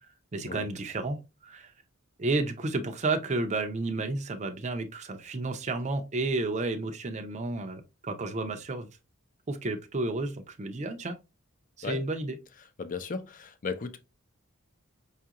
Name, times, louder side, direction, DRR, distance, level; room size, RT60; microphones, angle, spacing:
voice 1, 0.3-1.2 1.4-1.7 2.2-8.9 9.5-11.2 11.8-12.4, right 2 dB, 30° right, 0.5 m, -31 dB
voice 2, 12.8-14.0, left 4 dB, 40° left, 0.5 m, -35 dB
5.4 x 2.4 x 2.8 m
head